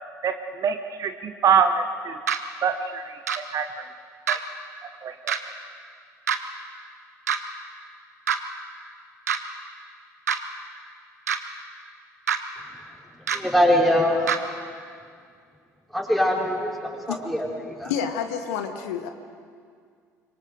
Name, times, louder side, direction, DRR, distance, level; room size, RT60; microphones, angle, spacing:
voice 1, 0.2-2.2 2.6-3.2 3.5-3.9 4.3-4.4 5.0-5.3, right 6 dB, 40° right, 8 dB, 1.1 m, -24 dB
sound 1, 2.3-2.4 3.3-3.4 4.3-4.4 5.3-5.4 6.3-6.4 7.3-7.4 8.3-8.4 9.3-9.4 10.3-10.4 11.3-11.4 12.3-12.4 13.3-13.4 14.3-14.4, right 8 dB, 80° right, 1.1 m, -24 dB
voice 2, 13.3-14.2 15.9-17.9, equal, ahead, -1 dB, 4.9 m, -23 dB
voice 3, 17.8-19.1, left 8 dB, 65° left, 7 dB, 1.3 m, -29 dB
24.5 x 23.5 x 6.7 m, 2.2 s
figure-of-eight pair, 55°, 9 cm